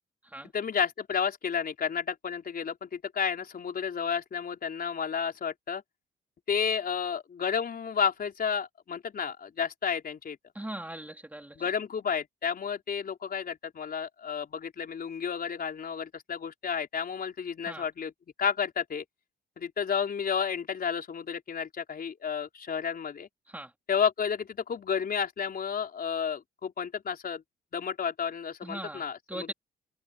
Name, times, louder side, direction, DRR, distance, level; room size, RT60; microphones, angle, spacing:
voice 1, 0.5-5.8 6.5-10.4 11.6-18.1 18.4-19.0 19.6-23.3 23.9-27.4 27.7-29.5, left 7 dB, 50° left, 4.4 m, -31 dB
voice 2, 10.5-11.6 17.7-17.9 23.5-23.7 28.6-29.5, right 1 dB, 10° right, 4.1 m, -40 dB
cardioid pair, 90°, 20 cm